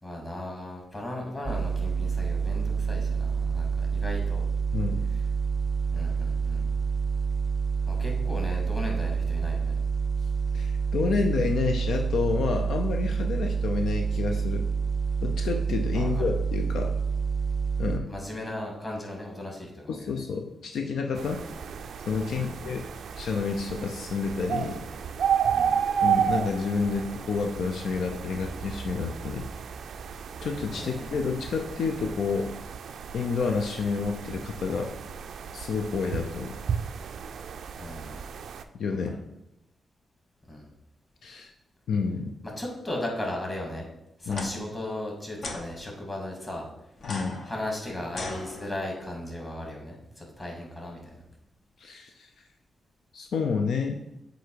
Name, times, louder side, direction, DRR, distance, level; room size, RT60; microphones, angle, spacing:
voice 1, 0.0-4.5 5.9-6.7 7.9-9.8 15.9-16.3 18.1-20.2 21.2-21.3 22.3-22.8 25.5-25.8 30.7-31.1 37.8-38.2 40.5-40.7 42.6-43.8 44.2-46.7 47.4-51.0, left 1 dB, 20° left, -1 dB, 2.0 m, -36 dB
sound 1, 1.5-18.0, right 6 dB, 10° right, 0.6 m, -28 dB
voice 2, 4.7-5.1 10.5-14.7 15.2-16.9 17.8-18.1 19.9-21.4 22.1-22.8 23.2-24.8 26.0-29.5 30.4-32.5 33.1-34.9 35.5-36.6 38.8-39.2 41.2-41.5 41.9-42.3 44.3-44.5 47.0-47.4 51.8-52.3 53.1-54.0, left 5 dB, 80° left, 4 dB, 0.5 m, -29 dB
sound 2, 21.2-38.6, right 8 dB, 75° right, 0.3 m, -32 dB
sound 3, 44.2-44.5 45.4-45.6 47.0-49.0, left 2 dB, 55° left, 0.9 m, -38 dB
7.9 x 2.7 x 4.6 m, 0.86 s
cardioid pair, 80°, 0 cm